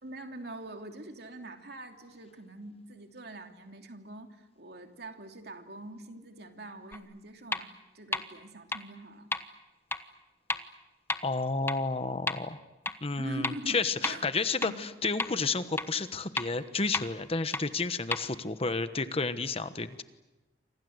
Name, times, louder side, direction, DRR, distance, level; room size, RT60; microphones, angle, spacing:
voice 1, 0.0-9.3 13.2-14.2 14.6-14.8, right 2 dB, 65° right, 5 dB, 2.9 m, -44 dB
sound 1, 6.9-7.0 7.5-7.6 8.1-8.2 8.7-8.8 9.3-9.4 9.9-10.0 10.5-10.6 11.1-11.2 11.7-11.8 12.3-12.4 12.9-13.0 13.4-13.5 14.0-14.1 14.6-14.7 15.2-15.3 15.8-15.9 16.4-16.5 16.9-17.0 17.5-17.6 18.1-18.2, left 3 dB, 15° left, 1.2 m, -30 dB
voice 2, 11.2-12.6 13.0-20.0, left 3 dB, 35° left, 11 dB, 1.2 m, -31 dB
29.0 x 25.5 x 8.0 m, 1.1 s
head